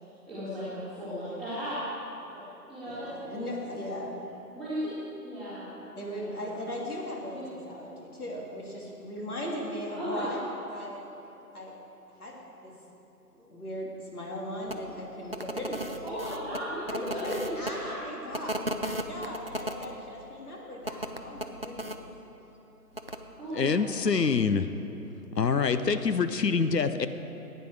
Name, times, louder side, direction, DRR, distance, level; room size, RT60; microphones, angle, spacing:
voice 1, 0.3-1.9 2.3-3.7 4.5-4.9 5.2-5.7 6.0-6.8 7.3-7.4 10.0-10.5 16.0-18.1 23.4-24.0, equal, 5° left, -19 dB, 1.9 m, -36 dB
voice 2, 2.8-4.1 6.0-11.1 11.5-11.8 12.2-12.7 13.3-16.0 16.9-22.0 23.6-23.7, equal, 65° left, -2 dB, 2.9 m, -38 dB
sound 1, 14.7-14.8 15.3-17.7 18.3-19.9 20.8-22.0 22.9-23.2, right 1 dB, 40° right, 0.4 m, -35 dB
voice 3, 23.5-24.7 25.4-27.1, left 5 dB, 80° left, 10 dB, 0.8 m, -25 dB
15.0 x 9.3 x 4.8 m, 3.0 s
figure-of-eight pair, 150°, 48 cm